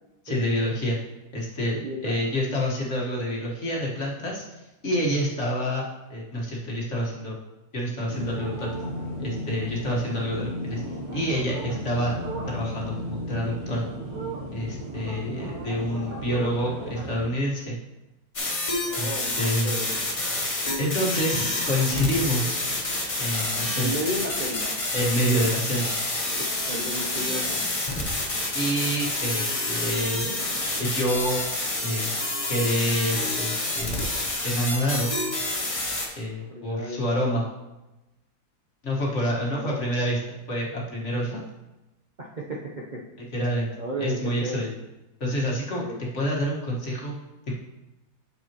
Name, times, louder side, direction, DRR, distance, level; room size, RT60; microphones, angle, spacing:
voice 1, 0.3-1.0 1.3-5.8 6.1-7.4 7.7-8.7 9.2-10.8 11.1-12.1 12.5-13.8 14.5-17.8 19.0-19.1 19.4-19.7 20.8-22.7 23.2-23.9 24.9-25.9 28.5-30.3 30.8-31.4 31.8-32.1 32.5-34.0 34.4-35.1 36.2-37.5 38.8-41.4 43.3-43.7 44.0-44.7 45.2-45.8 46.1-47.1, equal, 45° left, -4 dB, 1.8 m, -27 dB
voice 2, 1.8-2.2 18.8-19.4 19.6-19.9 23.8-24.7 26.4-27.6 36.5-37.3 39.4-39.9 42.2-43.0 43.8-44.8 45.8-46.0, equal, 40° right, -4 dB, 0.7 m, -34 dB
sound 1, 8.1-17.3, right 1 dB, 65° right, 1.5 m, -34 dB
sound 2, 18.3-36.1, left 2 dB, 25° left, 0.9 m, -28 dB
9.1 x 6.6 x 3.0 m, 1.0 s
omnidirectional pair, 1.7 m